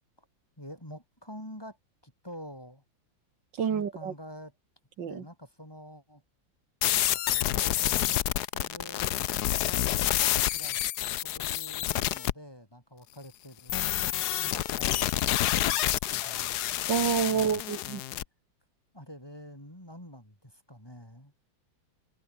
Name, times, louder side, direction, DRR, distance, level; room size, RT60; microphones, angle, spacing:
voice 1, 0.6-1.8 2.0-2.8 3.6-4.5 5.1-6.2 6.9-9.9 10.4-10.9 11.2-16.8 17.2-17.6 18.9-21.3, equal, 10° left, 7.3 m, -47 dB
voice 2, 3.6-4.1 5.0-5.1 16.9-18.0, right 7 dB, 70° right, 2.4 m, -28 dB
sound 1, 6.8-12.3 13.7-18.2, left 13 dB, 65° left, 1.1 m, -28 dB
open air
omnidirectional pair, 2.1 m